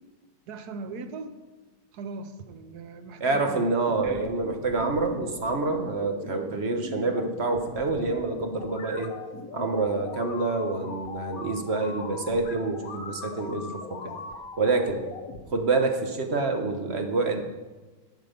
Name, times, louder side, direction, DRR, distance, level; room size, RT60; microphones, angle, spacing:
voice 1, 0.5-1.3 1.9-3.7 4.0-4.3, right 4 dB, 80° right, 9 dB, 1.4 m, -39 dB
voice 2, 3.2-9.1 9.5-14.1 14.6-15.0 15.5-17.4, right 3 dB, 45° right, 5 dB, 1.3 m, -27 dB
sound 1, 3.7-15.4, left 3 dB, 65° left, 1.6 m, -40 dB
11.5 x 7.3 x 5.2 m, 1.3 s
omnidirectional pair, 1.7 m